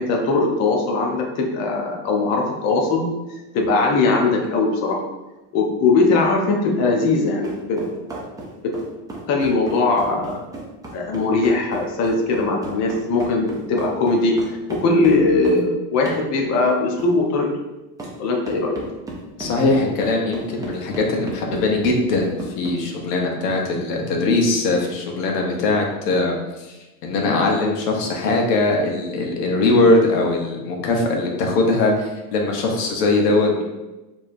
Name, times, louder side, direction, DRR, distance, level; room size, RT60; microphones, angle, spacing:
voice 1, 0.0-3.1 3.5-5.0 5.5-7.8 8.6-8.7 9.3-10.4 10.9-17.5 18.2-18.8, left 3 dB, 35° left, 0 dB, 0.6 m, -20 dB
sound 1, 7.4-15.6 16.0-16.3 17.0-17.1 18.0-18.1 18.4-22.8, right 2 dB, 10° right, 0.5 m, -34 dB
voice 2, 19.4-26.7 27.0-33.6, left 2 dB, 90° left, 0 dB, 1.1 m, -20 dB
4.6 x 3.0 x 2.6 m, 1.1 s
supercardioid pair, 135°, 46 cm